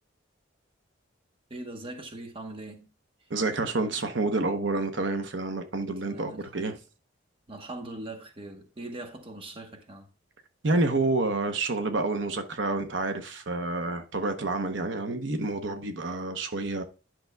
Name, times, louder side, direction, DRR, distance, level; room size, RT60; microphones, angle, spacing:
voice 1, 1.5-2.9 3.2-3.3 6.0-6.8 7.5-10.1, right 2 dB, 25° right, 1.0 m, -41 dB
voice 2, 3.3-6.7 10.6-16.8, right 2 dB, 70° right, 0.8 m, -28 dB
10.5 x 5.9 x 2.2 m
head